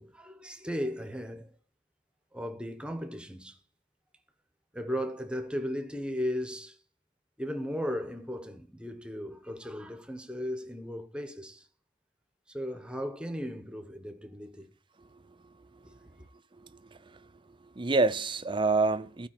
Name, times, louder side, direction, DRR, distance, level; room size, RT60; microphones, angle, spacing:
voice 1, 0.0-1.5 2.3-3.6 4.7-6.8 7.4-11.7 12.5-14.7 15.8-15.9, equal, 5° right, 1.1 m, -36 dB
voice 2, 15.4-16.0 16.5-17.3 17.6-19.3, right 3 dB, 30° right, 0.6 m, -29 dB
15.0 x 5.1 x 8.8 m
head